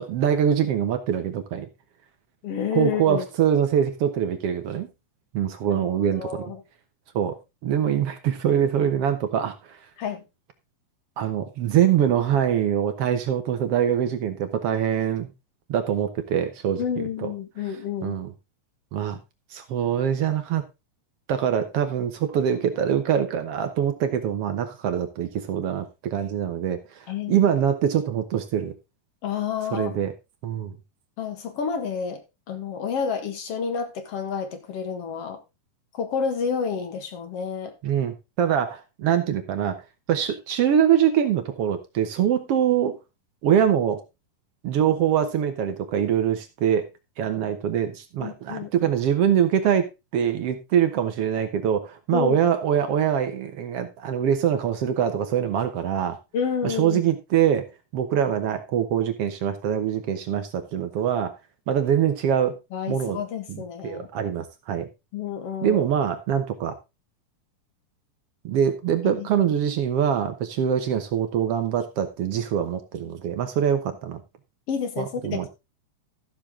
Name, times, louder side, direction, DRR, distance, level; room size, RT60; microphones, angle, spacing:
voice 1, 0.0-1.7 2.7-4.9 5.3-6.4 7.1-7.3 7.6-9.5 11.2-15.3 15.7-16.8 17.2-17.3 18.0-18.3 18.9-19.2 19.5-20.6 21.3-28.7 29.7-30.1 30.4-30.7 37.8-39.8 40.1-43.0 43.4-44.0 44.6-46.8 47.2-56.2 56.6-57.7 57.9-61.3 61.7-62.6 62.9-63.2 63.5-64.9 65.6-66.8 68.4-74.2 75.0-75.5, right 9 dB, 65° right, 8 dB, 1.6 m, -24 dB
voice 2, 2.4-3.3 5.7-5.8 6.2-6.6 10.0-10.2 16.8-18.2 27.1-27.5 29.2-30.0 31.2-35.4 35.9-37.7 48.2-48.7 52.1-52.4 56.3-57.0 62.7-64.1 65.1-65.9 69.0-69.3 74.7-75.5, left 6 dB, 55° left, 8 dB, 2.2 m, -29 dB
13.5 x 6.9 x 3.7 m, 0.25 s
omnidirectional pair, 3.9 m